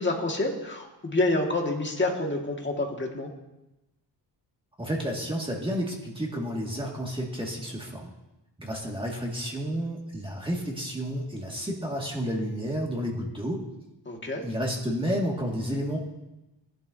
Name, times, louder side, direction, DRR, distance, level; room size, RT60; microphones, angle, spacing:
voice 1, 0.0-3.3 14.1-14.5, left 2 dB, 25° left, 0 dB, 1.9 m, -28 dB
voice 2, 4.8-8.1 8.6-13.6 14.4-16.0, equal, 10° right, -2 dB, 2.0 m, -31 dB
19.0 x 11.5 x 2.7 m, 0.97 s
wide cardioid pair, 145°, 44 cm